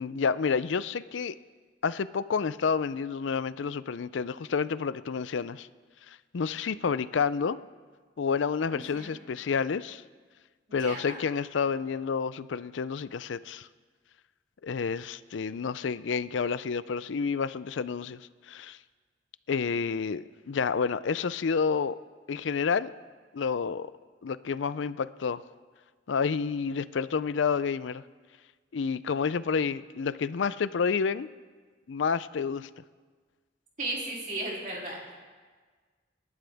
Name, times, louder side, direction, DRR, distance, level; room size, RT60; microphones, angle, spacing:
voice 1, 0.0-1.4 1.8-5.7 6.1-7.6 8.2-10.0 10.7-13.7 14.6-18.8 19.5-22.0 22.3-22.9 23.3-23.9 24.2-25.4 26.1-28.0 28.7-31.3 31.9-32.7, left 5 dB, 85° left, 16 dB, 0.5 m, -29 dB
voice 2, 8.7-9.2 10.8-11.2 33.8-35.1, right 2 dB, 45° right, -3 dB, 3.2 m, -35 dB
27.5 x 11.5 x 3.5 m, 1.5 s
head